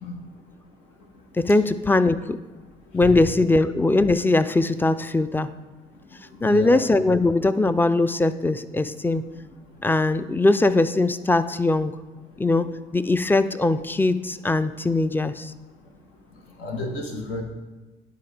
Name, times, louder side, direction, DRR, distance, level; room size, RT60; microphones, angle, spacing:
voice 1, 1.4-2.4 2.9-5.5 6.4-9.2 9.8-11.9 12.4-15.5, left 2 dB, 10° left, 14 dB, 0.4 m, -21 dB
voice 2, 6.4-6.8 16.6-17.4, left 2 dB, 80° left, 2 dB, 1.2 m, -31 dB
10.5 x 3.9 x 3.4 m, 1.2 s
supercardioid pair, 60°, 19 cm